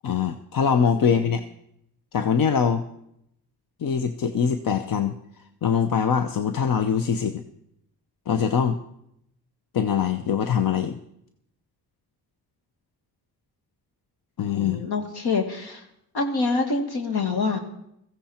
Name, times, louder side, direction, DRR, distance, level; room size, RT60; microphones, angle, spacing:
voice 1, 0.0-1.4 2.1-2.9 3.8-5.2 5.6-7.4 8.3-8.8 9.7-11.0 14.4-14.8, left 7 dB, 55° left, 9 dB, 0.8 m, -23 dB
voice 2, 0.8-1.3 14.5-15.8 16.1-17.6, left 4 dB, 75° left, 4 dB, 2.2 m, -26 dB
16.0 x 15.0 x 4.4 m, 0.78 s
cardioid pair, 80°, 39 cm